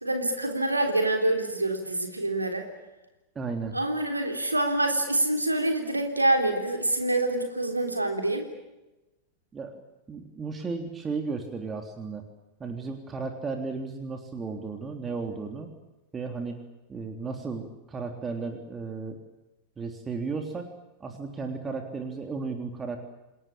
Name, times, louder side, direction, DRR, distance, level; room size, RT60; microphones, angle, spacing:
voice 1, 0.0-2.7 3.7-8.4, right 2 dB, 85° right, 5 dB, 3.7 m, -26 dB
voice 2, 3.4-3.7 9.5-9.7 10.1-12.2 12.6-15.7 16.1-16.6 16.9-19.2 19.8-20.7 21.0-23.0, right 4 dB, 20° right, 5 dB, 3.4 m, -34 dB
29.0 x 20.5 x 8.7 m, 1.0 s
figure-of-eight pair, 90°, 0 cm